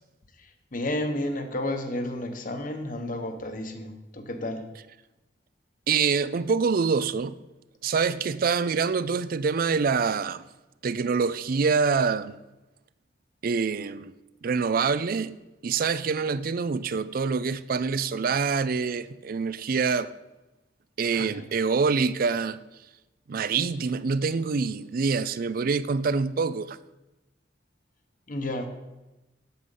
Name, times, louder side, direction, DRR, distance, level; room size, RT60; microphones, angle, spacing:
voice 1, 0.4-4.7 21.2-21.4 28.3-28.7, left 1 dB, 45° left, 1.1 m, -32 dB
voice 2, 5.9-7.4 7.8-10.4 10.8-12.4 13.4-14.1 14.4-15.3 15.6-20.1 21.0-22.6 23.3-26.8, right 5 dB, 50° right, 0.4 m, -25 dB
8.4 x 7.7 x 5.5 m
head